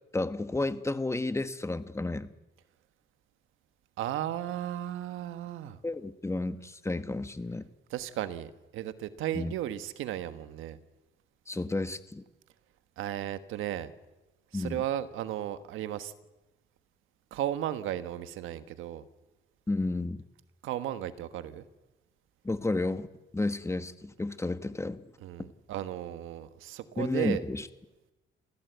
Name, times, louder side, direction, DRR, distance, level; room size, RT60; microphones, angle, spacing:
voice 1, 0.1-2.3 5.8-7.7 9.3-9.5 11.5-12.2 14.5-14.8 19.7-20.2 22.4-23.1 23.3-25.1 27.0-27.7, left 2 dB, 15° left, 11 dB, 1.3 m, -32 dB
voice 2, 4.0-5.8 7.9-10.8 13.0-13.9 14.5-16.1 17.3-19.0 20.6-21.7 25.2-27.4, right 12 dB, 90° right, 11 dB, 1.3 m, -35 dB
27.5 x 16.0 x 8.1 m, 1.1 s
cardioid pair, 90°, 20 cm